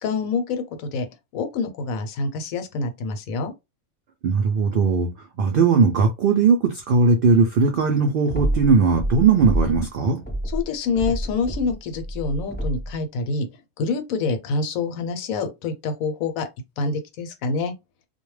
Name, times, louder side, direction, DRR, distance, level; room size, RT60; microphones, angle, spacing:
voice 1, 0.0-1.1 1.3-3.5 10.4-16.5 16.8-17.7, left 4 dB, 75° left, 1.0 m, -26 dB
voice 2, 4.2-5.1 5.4-10.2, right 4 dB, 85° right, 0.4 m, -18 dB
sound 1, 8.3-9.9 10.2-12.9, right 1 dB, 10° left, 0.7 m, -28 dB
2.3 x 2.2 x 3.1 m
omnidirectional pair, 1.5 m